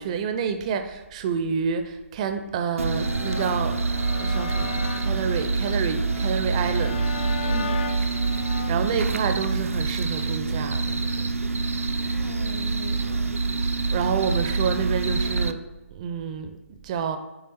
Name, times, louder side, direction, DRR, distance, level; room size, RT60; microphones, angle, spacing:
voice 1, 0.0-3.8 4.2-7.1 8.7-10.8 13.9-15.6 15.9-16.5 16.8-17.2, right 6 dB, 30° right, 0.5 m, -28 dB
sound 1, 2.8-15.5, right 4 dB, 80° right, 0.5 m, -26 dB
sound 2, 2.9-8.7, left 4 dB, 45° left, 0.6 m, -37 dB
voice 2, 7.5-8.0 12.0-13.5, left 2 dB, 75° left, 1.0 m, -39 dB
8.7 x 3.4 x 4.2 m
figure-of-eight pair, 140°, 7 cm